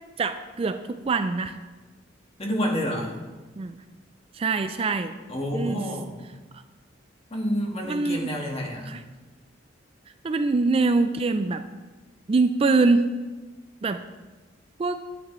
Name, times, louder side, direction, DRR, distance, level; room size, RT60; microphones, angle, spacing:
voice 1, 0.2-1.6 3.6-3.8 4.3-5.1 5.5-5.8 7.9-8.3 8.9-9.0 10.2-11.6 12.3-13.1 13.8-14.0 14.8-15.0, right 3 dB, 30° right, 9 dB, 0.3 m, -23 dB
voice 2, 2.4-3.2 5.3-6.1 7.3-8.9, equal, 30° left, 0 dB, 1.6 m, -28 dB
10.0 x 9.0 x 3.1 m, 1.3 s
head